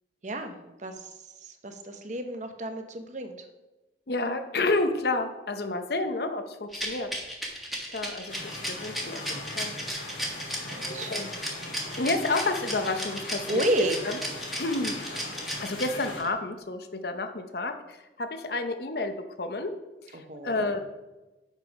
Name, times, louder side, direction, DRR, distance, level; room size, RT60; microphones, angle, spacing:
voice 1, 0.2-3.5 10.7-11.3 13.5-14.0 20.1-20.7, right 1 dB, 40° right, 6 dB, 0.8 m, -32 dB
voice 2, 4.1-7.1 7.4-9.7 10.2-10.6 11.0-11.3 12.0-13.7 14.1-14.2 14.6-15.0 15.6-19.7 20.0-20.8, left 2 dB, 55° left, 7 dB, 0.7 m, -30 dB
Rattle, 6.7-16.3, equal, ahead, 1.1 m, -34 dB
sound 1, 8.3-16.2, left 2 dB, 85° left, 1.9 m, -40 dB
7.5 x 5.4 x 5.1 m, 1.1 s
head